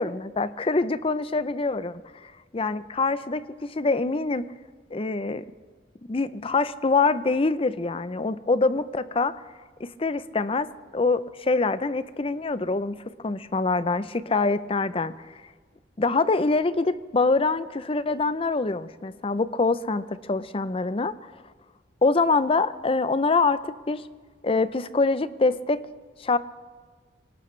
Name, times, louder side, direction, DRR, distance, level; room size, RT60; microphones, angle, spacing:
voice 1, 0.0-4.5 4.9-5.4 6.1-9.3 9.8-15.1 16.0-21.1 22.0-23.6 23.9-24.0 24.4-25.8 26.2-26.4, left 3 dB, 30° left, 15 dB, 0.5 m, -25 dB
24.0 x 18.5 x 3.2 m, 1.5 s
head